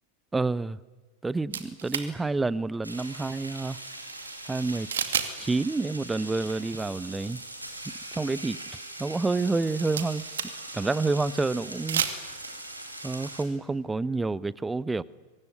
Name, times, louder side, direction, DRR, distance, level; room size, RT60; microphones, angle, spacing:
voice 1, 0.3-0.8 1.2-3.8 4.5-4.9 5.4-7.4 8.1-8.6 9.0-10.3 10.7-12.0 13.0-15.0, right 3 dB, 10° right, 0.8 m, -28 dB
sound 1, 1.5-2.1 4.9-5.3 5.6-5.7 9.6-10.7 11.7-12.2, right 8 dB, 65° right, 2.3 m, -30 dB
sound 2, 2.8-13.4, right 2 dB, 85° right, 4.2 m, -41 dB
24.0 x 21.5 x 9.7 m
figure-of-eight pair, 90°, 0 cm